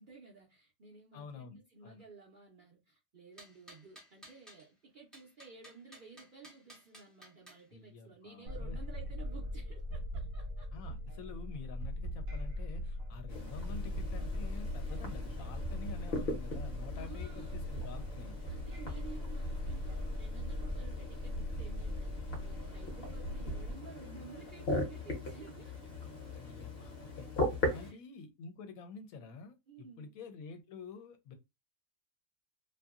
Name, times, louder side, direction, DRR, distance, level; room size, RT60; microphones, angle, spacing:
voice 1, 0.0-10.7 14.8-14.9 16.9-17.6 18.5-22.1 22.4-25.9 27.6-28.0 29.7-30.1, right 5 dB, 55° right, 0.6 m, -54 dB
voice 2, 1.1-2.0 7.7-8.8 10.7-18.3 26.4-27.3 27.7-31.3, left 5 dB, 75° left, 1.0 m, -48 dB
sound 1, 3.4-4.6 5.1-7.6, right 1 dB, ahead, 0.3 m, -56 dB
sound 2, 8.5-23.7, equal, 75° right, 1.1 m, -40 dB
sound 3, 13.3-27.9, left 2 dB, 50° left, 0.9 m, -40 dB
2.6 x 2.6 x 2.3 m
omnidirectional pair, 1.5 m